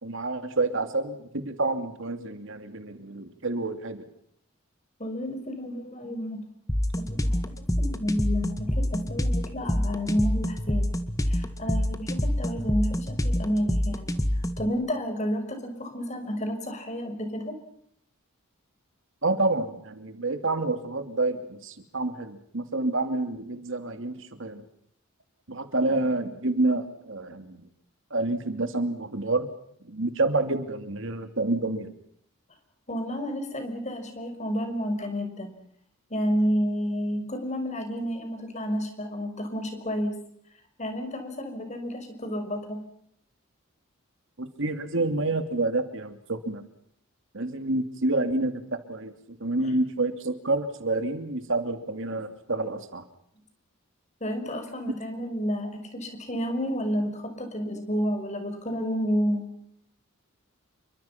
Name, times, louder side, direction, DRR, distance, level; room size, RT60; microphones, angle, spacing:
voice 1, 0.0-4.1 19.2-24.6 25.5-27.6 28.1-29.5 29.8-31.9 44.4-46.6 47.3-53.0, right 2 dB, 60° right, 8 dB, 2.6 m, -28 dB
voice 2, 5.0-6.4 7.0-10.9 11.3-14.1 14.6-17.5 32.9-35.5 36.1-40.1 40.8-42.8 49.6-49.7 54.2-59.5, equal, 30° left, 6 dB, 5.6 m, -30 dB
sound 1, 6.7-14.7, equal, 15° left, 1.7 m, -27 dB
29.0 x 24.5 x 5.9 m, 0.69 s
head